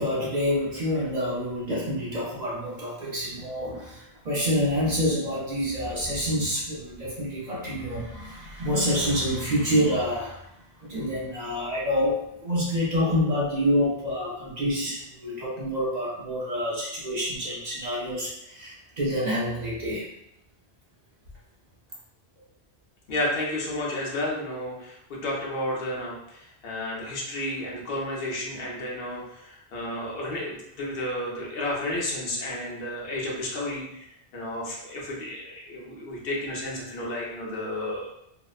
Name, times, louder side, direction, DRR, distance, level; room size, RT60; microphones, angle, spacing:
voice 1, 0.0-10.5 10.8-20.1, equal, 45° right, -5 dB, 0.6 m, -27 dB
voice 2, 23.1-34.1 34.3-38.1, left 1 dB, 60° left, -4 dB, 0.9 m, -32 dB
2.7 x 2.0 x 2.3 m, 0.79 s
omnidirectional pair, 1.1 m